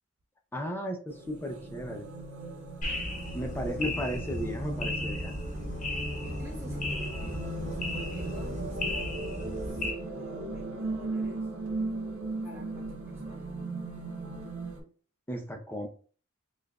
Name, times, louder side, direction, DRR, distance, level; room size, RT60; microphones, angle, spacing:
voice 1, 0.5-2.1 3.3-5.4 15.3-15.9, equal, 10° left, 3 dB, 0.6 m, -35 dB
sound 1, 1.1-14.8, right 2 dB, 75° right, 1.3 m, -37 dB
sound 2, 2.8-9.9, left 2 dB, 35° left, 1.0 m, -35 dB
voice 2, 3.1-4.2 6.2-11.5 12.4-13.5, right 1 dB, 10° right, -3 dB, 1.5 m, -50 dB
6.6 x 2.5 x 2.4 m, 0.41 s
head